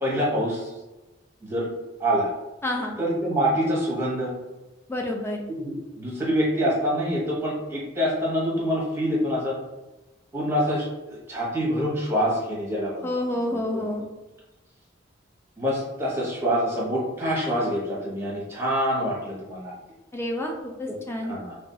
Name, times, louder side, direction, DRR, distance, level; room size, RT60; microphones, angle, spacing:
voice 1, 0.0-0.7 1.4-1.7 2.0-2.3 3.0-4.3 5.5-9.6 10.3-13.2 13.5-13.8 15.6-19.7 21.2-21.6, equal, 15° right, -5 dB, 1.0 m, -26 dB
voice 2, 2.6-2.9 4.9-5.4 13.0-14.1 20.1-21.3, left 1 dB, 15° left, 1 dB, 0.4 m, -29 dB
2.5 x 2.3 x 3.7 m, 1.1 s
head